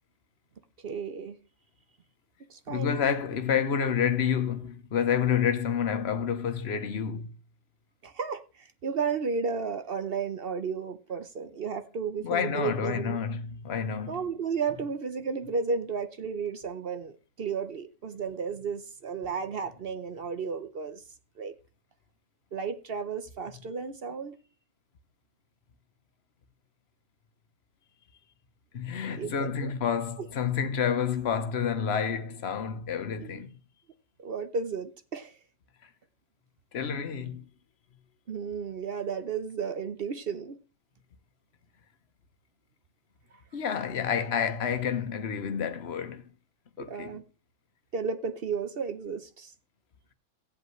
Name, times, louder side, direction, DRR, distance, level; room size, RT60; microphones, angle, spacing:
voice 1, 0.8-1.4 2.5-2.9 8.0-13.2 14.1-21.0 21.4-21.5 22.5-24.4 28.9-29.7 33.2-33.4 34.2-35.4 38.3-40.6 46.8-47.2 47.9-49.5, right 5 dB, 50° right, 0.8 m, -33 dB
voice 2, 2.7-7.3 12.2-14.2 28.7-33.5 36.7-37.4 43.5-46.2 46.8-47.1, left 7 dB, 50° left, 1.1 m, -29 dB
16.5 x 7.9 x 3.2 m
omnidirectional pair, 1.6 m